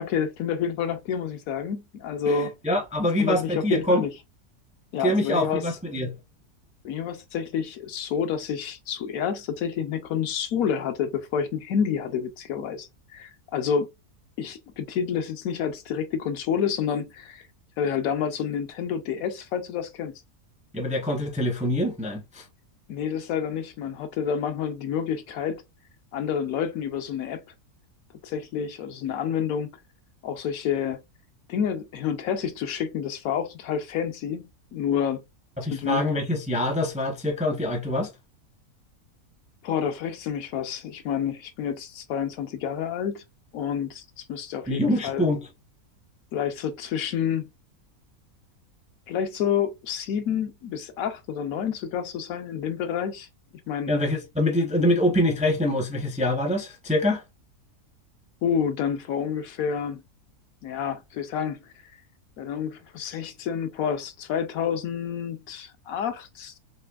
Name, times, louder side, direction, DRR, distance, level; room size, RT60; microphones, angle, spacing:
voice 1, 0.0-2.5 3.2-4.1 4.9-5.6 6.8-13.9 14.4-17.5 17.8-20.1 22.9-25.6 26.1-27.4 28.2-29.7 30.2-31.0 31.5-35.2 35.7-36.0 39.6-43.2 43.5-45.3 46.3-47.5 49.1-53.3 53.7-53.9 58.4-60.0 60.6-61.6 62.4-66.6, left 7 dB, 70° left, 1.0 m, -29 dB
voice 2, 2.3-4.0 5.0-6.2 20.7-22.4 35.6-38.1 44.7-45.5 53.9-57.2, left 1 dB, 10° right, 0.4 m, -25 dB
4.2 x 3.2 x 2.3 m
omnidirectional pair, 1.6 m